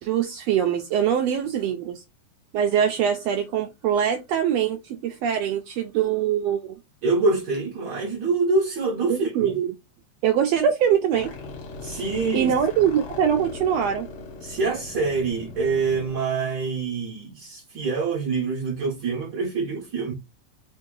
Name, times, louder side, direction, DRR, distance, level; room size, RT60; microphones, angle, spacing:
voice 1, 0.0-2.0 2.5-6.7 9.1-9.7 10.2-11.3 12.3-14.1, right 9 dB, 80° right, 1.5 m, -23 dB
voice 2, 7.0-9.6 11.8-12.5 14.4-20.1, right 4 dB, 60° right, 1.2 m, -25 dB
sound 1, 11.1-16.2, left 3 dB, 65° left, 2.0 m, -39 dB
4.4 x 2.7 x 3.8 m
omnidirectional pair, 3.4 m